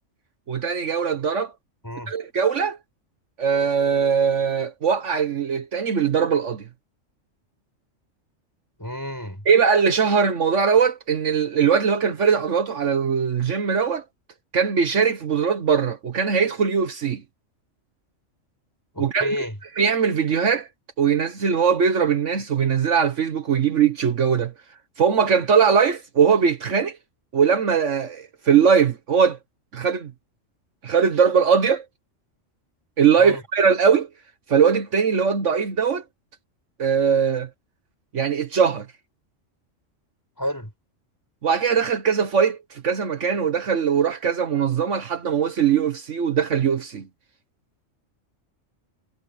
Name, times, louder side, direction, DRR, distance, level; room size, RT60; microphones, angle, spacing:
voice 1, 0.5-1.5 2.1-2.8 3.4-6.7 9.5-14.0 14.5-17.2 19.0-19.3 19.8-20.7 21.0-24.5 25.0-27.0 27.3-29.4 29.7-30.1 30.8-31.8 33.0-34.1 34.5-36.0 36.8-37.5 38.1-38.9 41.4-47.1, right 6 dB, 65° right, 1.5 m, -20 dB
voice 2, 8.8-9.5 18.9-19.6 33.2-33.4 40.4-40.7, equal, 15° left, 6.9 m, -30 dB
omnidirectional pair, 1.3 m